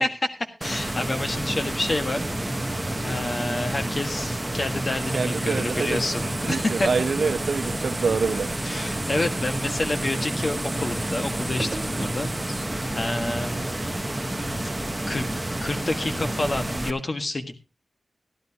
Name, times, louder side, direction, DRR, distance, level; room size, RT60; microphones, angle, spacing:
voice 1, 0.0-2.2 3.0-6.9 8.6-12.7 12.9-13.7 14.4-14.6 15.1-15.3 15.6-17.5, left 2 dB, 45° left, 6 dB, 1.6 m, -29 dB
sound 1, 0.6-16.9, right 1 dB, 15° right, 0.9 m, -29 dB
sound 2, 5.0-12.7, right 4 dB, 50° right, 1.4 m, -39 dB
voice 2, 5.1-6.1 6.4-8.5 13.5-13.7, right 5 dB, 75° right, 9 dB, 0.9 m, -26 dB
14.0 x 12.0 x 2.9 m, 0.28 s
wide cardioid pair, 75°, 0 cm